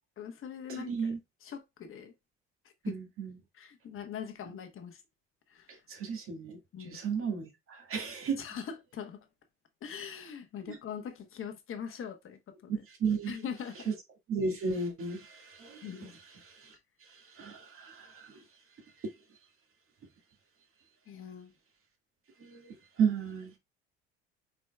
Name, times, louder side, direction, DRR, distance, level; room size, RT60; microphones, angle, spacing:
voice 1, 0.2-0.9 1.4-2.1 2.8-2.9 3.6-5.0 5.5-5.7 6.7-7.0 8.4-8.6 8.9-9.2 9.8-12.8 13.3-13.9 15.8-16.2 21.1-21.5, left 8 dB, 40° left, 1.2 m, -42 dB
voice 2, 0.7-1.2 2.8-3.4 5.7-8.4 10.7-10.8 12.7-13.4 13.9-14.0 14.3-16.1 16.4-18.4 19.0-19.1 22.4-23.6, right 5 dB, 45° right, 2.0 m, -34 dB
4.6 x 4.1 x 2.3 m
hypercardioid pair, 70°, 31 cm